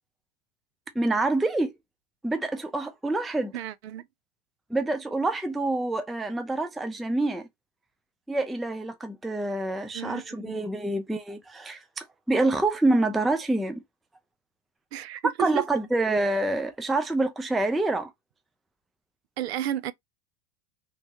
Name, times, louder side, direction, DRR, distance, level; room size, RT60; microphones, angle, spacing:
voice 1, 1.0-1.7 2.2-3.5 4.7-7.5 8.3-13.8 15.4-18.1, right 2 dB, ahead, 0.3 m, -27 dB
voice 2, 3.5-4.1 9.9-10.6 14.9-15.7 19.4-19.9, right 12 dB, 90° right, 0.5 m, -32 dB
3.0 x 2.7 x 3.5 m
supercardioid pair, 115°, 31 cm